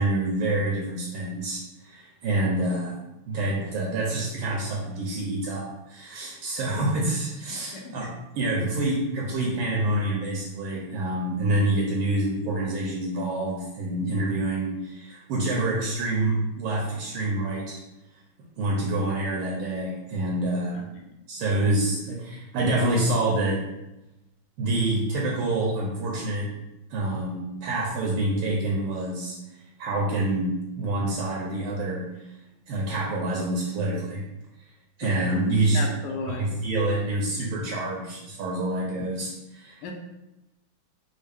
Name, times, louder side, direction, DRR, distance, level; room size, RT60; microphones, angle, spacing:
voice 1, 0.0-3.0 3.2-17.8 18.6-20.8 21.3-23.6 24.6-26.5 26.9-29.3 29.8-32.3 32.7-34.2 35.0-35.8 36.3-39.9, right 2 dB, 75° right, -2 dB, 1.3 m, -27 dB
voice 2, 7.5-7.8 35.7-36.5 39.8-39.9, left 4 dB, 75° left, 2 dB, 1.0 m, -34 dB
4.3 x 2.0 x 3.4 m, 0.97 s
omnidirectional pair, 2.4 m